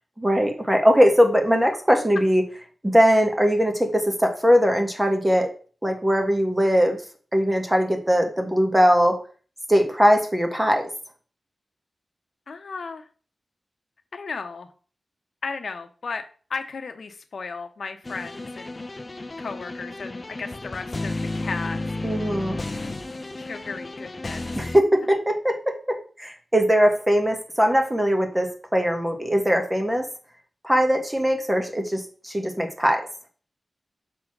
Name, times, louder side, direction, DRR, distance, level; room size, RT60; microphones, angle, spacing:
voice 1, 0.2-2.4 2.8-5.5 5.8-7.0 7.3-9.2 9.7-10.9 22.0-22.6 24.6-30.1 30.6-33.1, equal, 10° right, 4 dB, 1.4 m, -20 dB
voice 2, 12.5-13.1 14.1-14.7 15.4-16.2 16.5-18.9 19.4-21.8 23.4-24.5, left 4 dB, 70° left, 7 dB, 0.9 m, -35 dB
Slay the Dragon, 18.0-24.8, left 2 dB, 30° left, 0.6 m, -32 dB
6.3 x 4.0 x 6.0 m, 0.40 s
wide cardioid pair, 110°, 0 cm